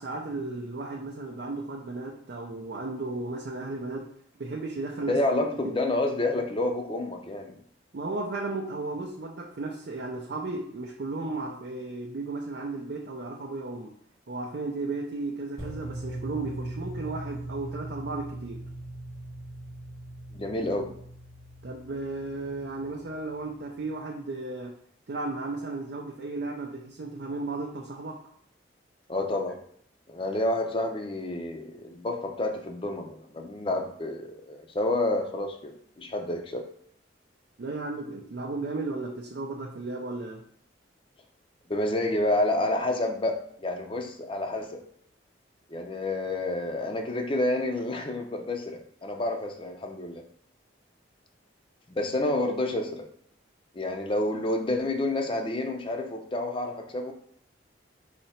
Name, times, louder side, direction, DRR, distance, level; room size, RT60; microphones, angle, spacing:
voice 1, 0.0-4.1 4.4-5.8 7.9-13.9 14.3-18.6 21.6-24.8 25.1-28.2 37.6-40.4, right 3 dB, 60° right, 0 dB, 0.5 m, -34 dB
voice 2, 5.1-7.6 20.3-20.9 29.1-29.6 30.1-36.6 41.7-44.8 45.7-50.2 52.0-53.0 53.7-57.1, left 1 dB, 25° left, 3 dB, 0.5 m, -29 dB
sound 1, 15.6-23.7, right 1 dB, 15° right, 0.9 m, -40 dB
4.2 x 2.8 x 4.3 m, 0.65 s
head